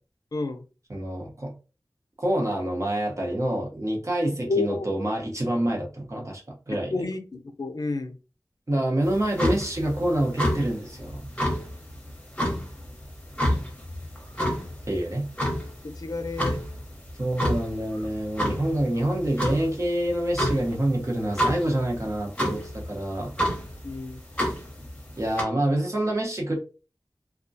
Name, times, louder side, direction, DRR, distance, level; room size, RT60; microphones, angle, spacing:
voice 1, 0.3-0.6 4.4-4.9 6.9-8.2 12.5-12.6 15.8-16.6 23.8-24.2, left 3 dB, 60° left, 6 dB, 0.4 m, -30 dB
voice 2, 0.9-1.5 2.2-6.4 6.7-7.1 8.7-11.3 14.9-15.3 17.2-23.3 24.4-24.5 25.2-26.6, right 1 dB, 45° right, 0 dB, 0.8 m, -27 dB
sound 1, 9.0-25.4, equal, 15° left, 0.8 m, -30 dB
2.3 x 2.1 x 2.6 m, 0.33 s
wide cardioid pair, 50°, 7 cm